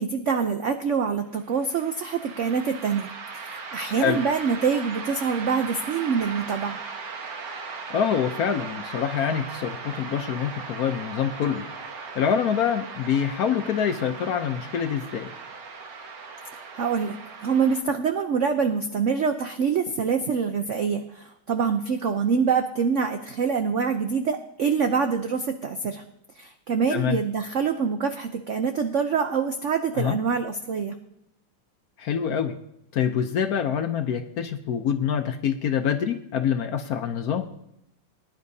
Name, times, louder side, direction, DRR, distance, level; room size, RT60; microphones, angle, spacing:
voice 1, 0.0-3.1 3.4-6.8 16.7-17.2 17.4-26.0 26.4-30.9, right 6 dB, 85° right, 7 dB, 0.6 m, -25 dB
sound 1, 1.4-17.8, right 4 dB, 65° right, 1.8 m, -38 dB
voice 2, 7.9-11.7 12.2-15.3 26.9-27.2 29.9-30.2 32.0-32.6 32.9-37.4, left 8 dB, 65° left, 7 dB, 1.0 m, -25 dB
20.0 x 10.5 x 2.7 m, 0.82 s
omnidirectional pair, 2.1 m